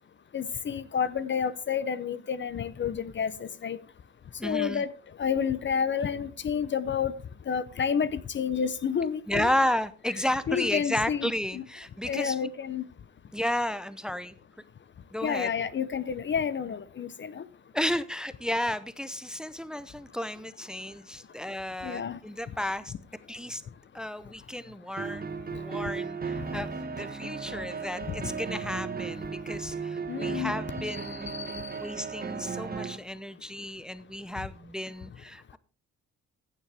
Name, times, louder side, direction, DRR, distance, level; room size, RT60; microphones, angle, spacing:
voice 1, 0.3-3.8 4.4-4.9 5.2-7.1 7.5-9.5 10.5-11.6 12.0-12.8 15.2-17.4 21.8-22.2 30.1-30.5 30.9-31.7, left 7 dB, 40° left, 0.6 m, -30 dB
voice 2, 4.4-4.8 9.3-12.5 13.3-14.4 15.1-15.5 17.7-22.9 23.3-23.6 23.9-25.3 25.5-35.6, left 1 dB, ahead, 0.7 m, -33 dB
sound 1, 25.0-33.0, right 5 dB, 30° right, 1.3 m, -35 dB
15.0 x 7.1 x 3.4 m
cardioid pair, 90°, 30 cm